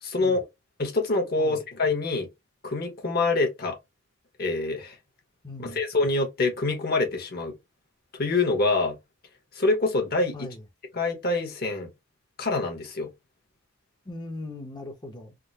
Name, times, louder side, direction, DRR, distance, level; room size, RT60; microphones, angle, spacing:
voice 1, 0.0-0.4 0.8-2.3 2.6-3.8 4.4-5.0 5.6-7.6 8.1-9.0 9.5-10.5 10.9-11.9 12.4-13.1, left 3 dB, 50° left, 1.1 m, -25 dB
voice 2, 5.4-5.8 10.3-10.6 14.0-15.3, left 2 dB, 20° left, 0.7 m, -39 dB
3.6 x 2.1 x 2.7 m
head